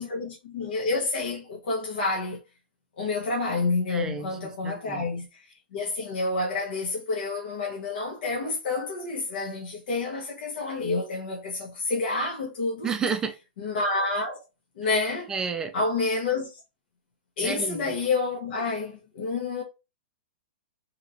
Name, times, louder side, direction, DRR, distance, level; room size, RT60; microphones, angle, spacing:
voice 1, 0.0-2.4 3.0-12.9 13.6-14.4 14.8-15.3 15.7-16.6 17.4-19.6, left 3 dB, 65° left, 0.9 m, -29 dB
voice 2, 3.9-5.0 12.8-13.3 15.3-15.7 17.4-17.9, right 5 dB, 10° right, 0.4 m, -31 dB
2.9 x 2.9 x 2.5 m
hypercardioid pair, 150°, 6 cm